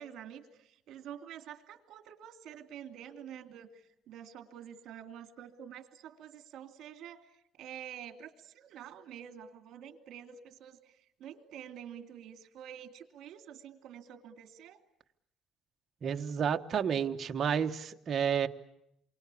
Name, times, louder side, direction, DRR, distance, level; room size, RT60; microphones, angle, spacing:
voice 1, 0.0-14.8, right 9 dB, 55° right, 7 dB, 2.7 m, -48 dB
voice 2, 16.0-18.5, right 7 dB, 35° right, 5 dB, 1.2 m, -30 dB
28.5 x 24.0 x 8.5 m, 0.81 s
cardioid pair, 170°, 0 cm